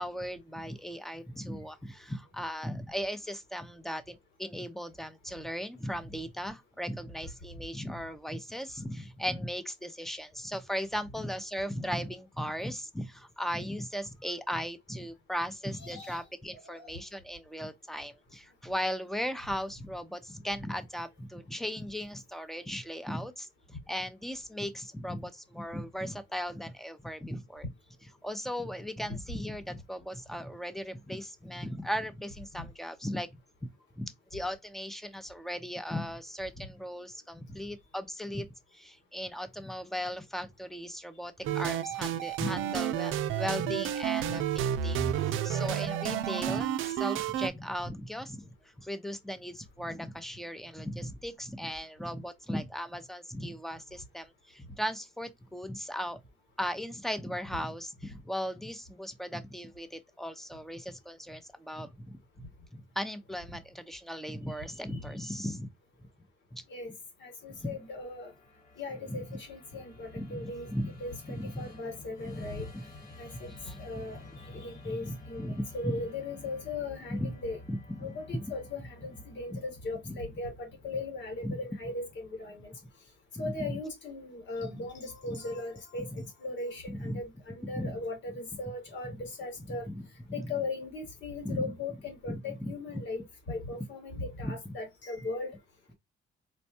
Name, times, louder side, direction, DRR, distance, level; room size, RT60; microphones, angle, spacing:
voice 1, 0.0-27.7 28.2-33.3 34.0-38.5 38.7-56.2 56.6-62.1 62.7-65.7 66.5-66.6 67.5-67.8 69.1-69.2 70.2-70.9 71.3-71.7 72.2-72.5 72.7-72.8 73.5-74.0 74.5-76.0 77.1-77.3 77.7-78.5 79.5-79.6 80.1-80.2 81.4-81.6 83.4-83.7 84.6-84.8 85.3-85.4 86.1-86.3 86.9-87.2 87.6-88.0 89.1-89.2 89.7-90.0 90.4-90.5 91.4-91.7 92.3-93.0 94.4-94.7, equal, ahead, 0.6 m, -37 dB
voice 2, 15.8-16.2 16.5-16.9 32.6-32.7 64.9-65.0 66.7-66.9 67.2-68.3 68.8-70.7 71.0-72.7 73.2-73.5 73.8-74.2 74.5-77.6 78.0-82.7 83.4-89.9 90.3-95.6, left 3 dB, 65° left, 1.8 m, -38 dB
sound 1, 41.4-47.5, right 10 dB, 85° right, 0.5 m, -31 dB
Musical instrument, 67.2-82.5, left 2 dB, 45° left, 1.5 m, -51 dB
4.4 x 2.2 x 2.7 m
cardioid pair, 90°, 20 cm